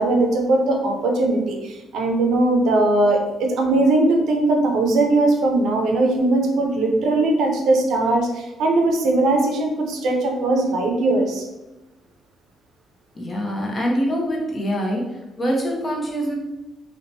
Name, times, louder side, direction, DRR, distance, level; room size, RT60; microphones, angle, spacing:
voice 1, 0.0-11.4, right 2 dB, 80° right, 2 dB, 0.5 m, -19 dB
voice 2, 13.1-15.0 15.4-16.3, equal, 30° left, -1 dB, 0.7 m, -24 dB
2.8 x 2.2 x 2.5 m, 1.0 s
cardioid pair, 95°, 0 cm